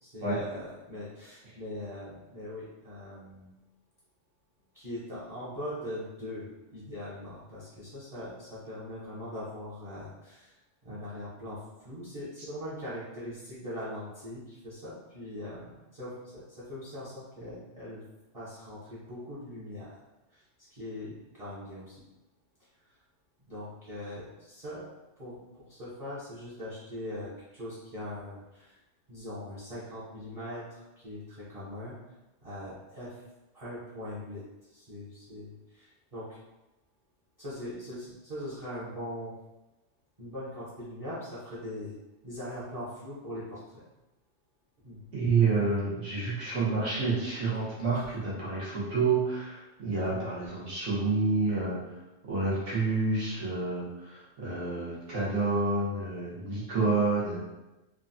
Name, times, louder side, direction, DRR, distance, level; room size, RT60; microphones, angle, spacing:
voice 1, 0.0-3.5 4.7-18.0 18.3-20.0 20.3-20.4 20.7-22.0 22.8-22.9 23.5-24.9 25.2-28.8 29.1-31.9 32.4-33.2 33.5-34.4 34.7-36.4 37.4-39.3 40.2-41.9 42.2-43.8 44.8-45.1 47.9-48.1 49.9-50.3, left 1 dB, 35° right, -10 dB, 0.7 m, -41 dB
voice 2, 45.1-51.8 52.3-57.4, right 3 dB, 85° right, -7 dB, 1.3 m, -29 dB
3.3 x 2.1 x 2.5 m, 1.0 s
omnidirectional pair, 1.2 m